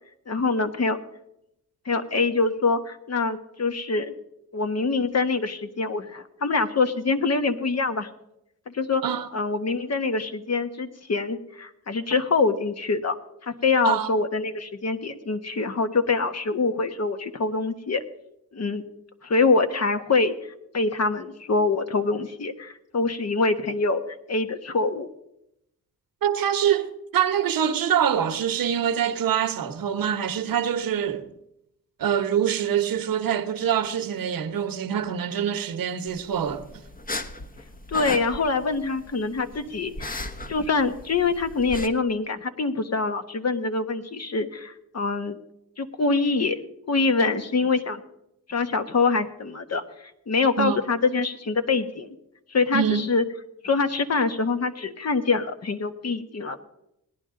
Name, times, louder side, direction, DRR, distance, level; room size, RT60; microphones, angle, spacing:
voice 1, 0.3-1.0 1.8-4.1 4.5-8.1 8.7-9.0 9.3-13.2 13.4-18.0 18.5-18.8 19.2-24.0 24.3-25.1 37.9-45.4 45.8-46.6 46.9-48.0 48.5-52.1 52.5-53.2 53.6-56.6, left 4 dB, 45° left, 1.3 m, -25 dB
voice 2, 26.2-31.3 32.0-36.6 50.6-50.8 52.7-53.0, right 9 dB, 70° right, 1.1 m, -25 dB
sound 1, 36.1-41.9, left 2 dB, 25° left, 1.0 m, -37 dB
18.0 x 10.5 x 3.8 m
cardioid pair, 65°, 36 cm